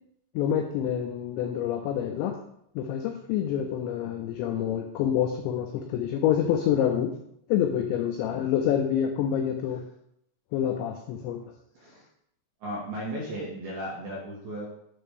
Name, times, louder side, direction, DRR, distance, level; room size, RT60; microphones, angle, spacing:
voice 1, 0.4-2.4 2.8-7.1 7.5-9.8 10.5-11.4, left 9 dB, 90° left, 4 dB, 2.5 m, -27 dB
voice 2, 11.8-12.1 12.6-14.7, right 1 dB, 70° right, -4 dB, 2.5 m, -35 dB
8.6 x 3.3 x 6.4 m, 0.72 s
omnidirectional pair, 5.9 m